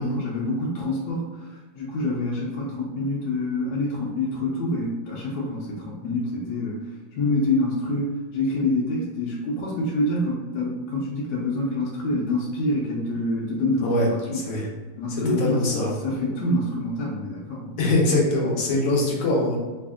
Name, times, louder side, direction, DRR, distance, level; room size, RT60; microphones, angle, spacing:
voice 1, 0.0-6.8 7.1-14.4 15.0-17.7, left 1 dB, 75° left, -5 dB, 1.3 m, -27 dB
voice 2, 14.3-14.7 15.2-16.0 17.8-19.6, left 2 dB, 55° left, -3 dB, 1.1 m, -23 dB
3.3 x 2.5 x 3.5 m, 1.4 s
omnidirectional pair, 2.0 m